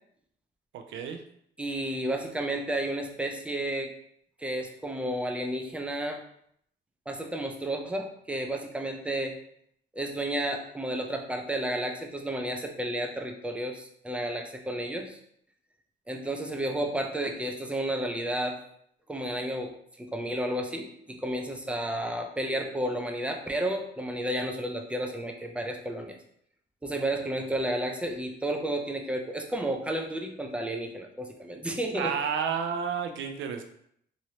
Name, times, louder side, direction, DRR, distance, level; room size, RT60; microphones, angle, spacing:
voice 1, 0.7-1.2 31.9-33.6, right 7 dB, 75° right, 6 dB, 0.5 m, -31 dB
voice 2, 1.6-3.9 4.4-6.2 7.1-9.4 9.9-15.2 16.1-18.6 19.1-26.2 26.8-32.2, right 1 dB, 5° right, 3 dB, 0.5 m, -32 dB
3.1 x 2.7 x 2.8 m, 0.69 s
cardioid pair, 90°, 20 cm